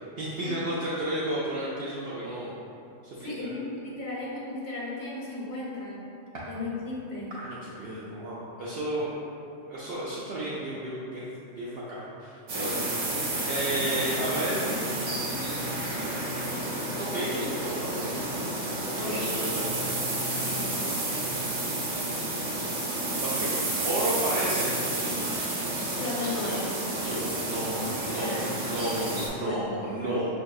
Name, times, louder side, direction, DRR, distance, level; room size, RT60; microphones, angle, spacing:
voice 1, 0.2-2.5 3.0-3.3 7.3-9.1 9.7-13.1 13.5-14.8 17.0-18.2 19.0-19.7 23.2-24.8 27.0-28.4 28.7-30.3, right 1 dB, 60° right, -8 dB, 0.7 m, -32 dB
voice 2, 3.2-6.0 6.5-7.3 19.0-19.3 20.5-20.9 25.8-26.8 27.6-28.5 29.4-29.7, left 2 dB, 45° left, -6 dB, 0.9 m, -36 dB
sound 1, 12.5-29.3, right 2 dB, 85° right, 1.2 m, -30 dB
6.1 x 2.6 x 2.3 m, 2.6 s
omnidirectional pair, 1.3 m